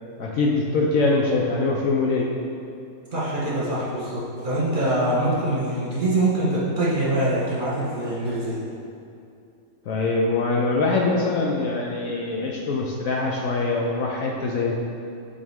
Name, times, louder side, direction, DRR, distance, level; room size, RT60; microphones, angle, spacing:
voice 1, 0.2-2.3 9.9-14.8, left 3 dB, 65° left, -2 dB, 1.0 m, -23 dB
voice 2, 3.1-8.6, right 1 dB, 30° right, -8 dB, 1.6 m, -24 dB
9.0 x 4.3 x 3.6 m, 2.5 s
omnidirectional pair, 1.7 m